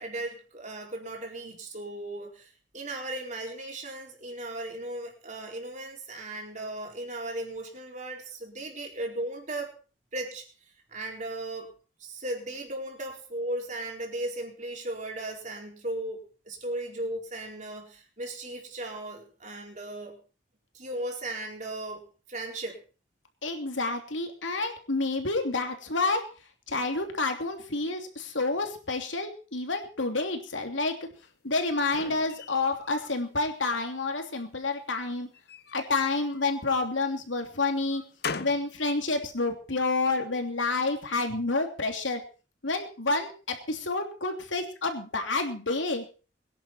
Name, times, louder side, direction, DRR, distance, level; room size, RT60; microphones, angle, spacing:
voice 1, 0.0-9.7 10.1-10.4 10.9-11.7 12.0-20.2 20.7-22.0 22.3-22.8, right 1 dB, 40° right, 1 dB, 4.4 m, -36 dB
voice 2, 23.4-26.2 26.7-30.9 31.4-35.3 35.7-38.0 38.4-42.2 42.6-46.0, left 3 dB, 80° left, 5 dB, 2.9 m, -29 dB
sound 1, 31.2-33.2 33.6-34.3 35.3-36.8 37.4-38.7, left 5 dB, 55° left, 0.9 m, -41 dB
22.0 x 10.5 x 4.4 m, 0.37 s
head